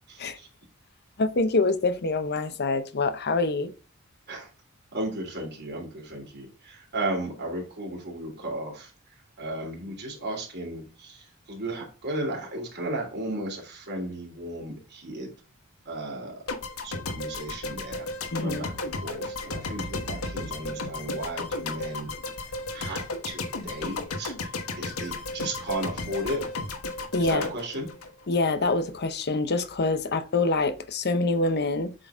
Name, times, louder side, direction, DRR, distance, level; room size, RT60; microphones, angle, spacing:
voice 1, 0.1-0.5 4.3-4.5 4.9-8.9 9.4-15.3 15.8-16.3 16.8-18.0 18.4-18.7 19.0-22.1 22.7-24.3 24.8-26.4 27.3-27.9, right 1 dB, 50° right, 3.0 m, -34 dB
voice 2, 1.2-3.7 18.3-18.7 27.1-27.4 28.3-31.9, left 3 dB, 50° left, 0.8 m, -25 dB
sound 1, 16.5-28.7, left 2 dB, 80° left, 1.3 m, -34 dB
7.8 x 3.9 x 3.6 m
head